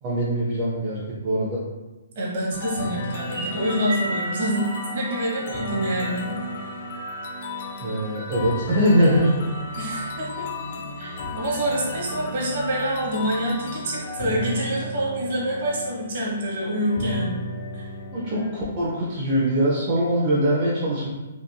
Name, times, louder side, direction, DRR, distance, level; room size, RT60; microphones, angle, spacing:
voice 1, 0.0-1.6 7.8-9.5 18.1-21.1, equal, 30° right, -8 dB, 0.6 m, -22 dB
voice 2, 2.1-4.7 4.9-6.3 9.7-10.5 11.0-17.4 17.7-17.9, right 1 dB, 55° right, -4 dB, 1.0 m, -26 dB
sound 1, 2.5-18.5, left 1 dB, 50° left, 0.4 m, -34 dB
sound 2, 3.2-7.7, right 1 dB, 90° right, 1.2 m, -35 dB
3.0 x 2.5 x 2.3 m, 1.1 s
hypercardioid pair, 155°, 0 cm